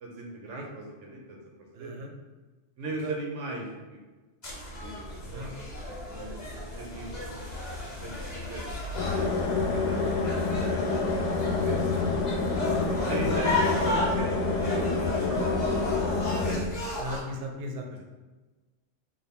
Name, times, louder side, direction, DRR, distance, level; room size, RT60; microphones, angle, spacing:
voice 1, 0.0-1.4 1.8-2.1 2.8-4.0 4.8-5.5 6.1-7.4 7.9-8.8 9.7-10.0 10.7-11.4 11.6-12.0 13.1-14.5 14.7-16.9, right 2 dB, 90° right, 0 dB, 1.1 m, -39 dB
voice 2, 1.7-2.1 3.0-3.1 5.2-5.5 11.9-12.0 12.4-13.5 17.0-18.0, equal, 65° right, 3 dB, 0.7 m, -39 dB
sound 1, 4.4-17.2, left 1 dB, 40° left, 0.9 m, -34 dB
sound 2, 9.0-16.6, left 3 dB, 70° left, 0.8 m, -27 dB
3.3 x 2.4 x 3.6 m, 1.3 s
omnidirectional pair, 1.2 m